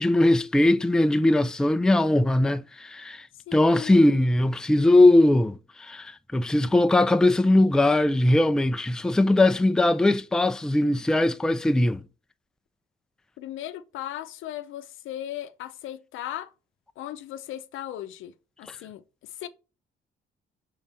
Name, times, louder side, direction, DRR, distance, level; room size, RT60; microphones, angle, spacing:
voice 1, 0.0-3.3 3.5-12.0 18.7-18.8, left 1 dB, 5° left, 0.4 m, -20 dB
voice 2, 3.5-4.2 13.4-16.5 17.0-18.3 18.6-19.5, left 12 dB, 80° left, 0.6 m, -37 dB
5.4 x 3.8 x 5.2 m
cardioid pair, 90°, 20 cm